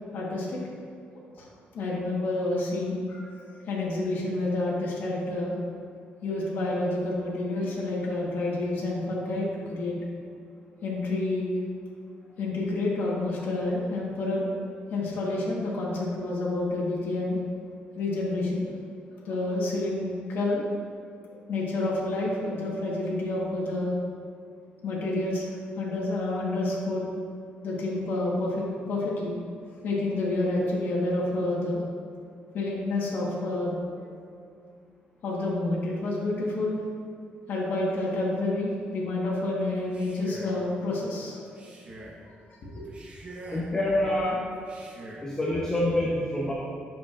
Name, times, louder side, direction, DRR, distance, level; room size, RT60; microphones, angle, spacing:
voice 1, 0.1-0.6 1.4-1.5 1.7-3.2 3.7-5.5 6.2-10.0 10.8-11.5 12.4-14.4 14.9-17.4 18.0-18.7 19.2-20.6 21.3-23.9 24.8-27.0 27.6-29.4 29.8-31.8 32.5-34.1 35.2-36.8 37.5-41.4 42.7-42.9 43.3-43.6, left 2 dB, 70° left, -4 dB, 1.4 m, -29 dB
Male speech man speaking, 39.8-40.7 41.5-42.2 42.8-43.8 44.6-45.3, right 2 dB, 35° right, 1.1 m, -45 dB
voice 2, 43.5-44.5 45.2-46.5, left 1 dB, 20° left, -5 dB, 0.8 m, -26 dB
9.2 x 6.1 x 2.5 m, 2.4 s
cardioid pair, 130°, 4 cm